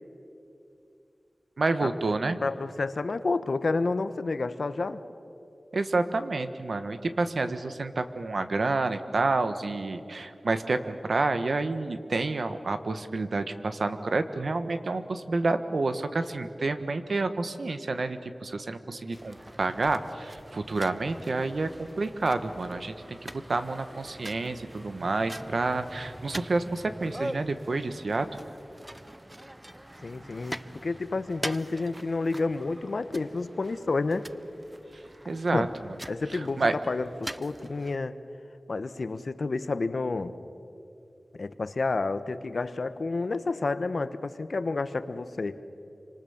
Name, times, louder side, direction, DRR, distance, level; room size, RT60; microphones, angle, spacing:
voice 1, 1.6-2.4 5.7-28.3 34.9-35.7 36.3-36.8, right 3 dB, 75° right, 9 dB, 1.4 m, -29 dB
voice 2, 2.4-5.0 30.0-34.3 35.5-35.7 36.1-38.2 38.7-40.3 41.3-45.6, left 3 dB, 70° left, 12 dB, 1.1 m, -30 dB
sound 1, 19.1-38.0, right 1 dB, 15° right, 0.6 m, -43 dB
28.0 x 25.5 x 7.2 m, 2.7 s
wide cardioid pair, 75°, 0 cm